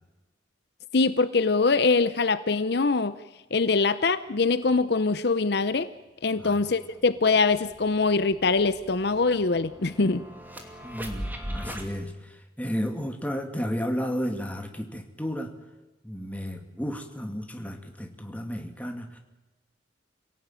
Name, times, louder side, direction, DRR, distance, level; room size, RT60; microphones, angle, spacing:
voice 1, 0.9-3.1 3.5-5.9 6.2-10.2, left 4 dB, 60° left, 14 dB, 0.7 m, -23 dB
voice 2, 6.3-6.6 10.8-15.5 16.0-19.2, equal, 10° left, 4 dB, 2.2 m, -33 dB
sound 1, 6.9-11.9, equal, 10° right, 2.7 m, -40 dB
26.5 x 17.5 x 9.1 m, 1.1 s
head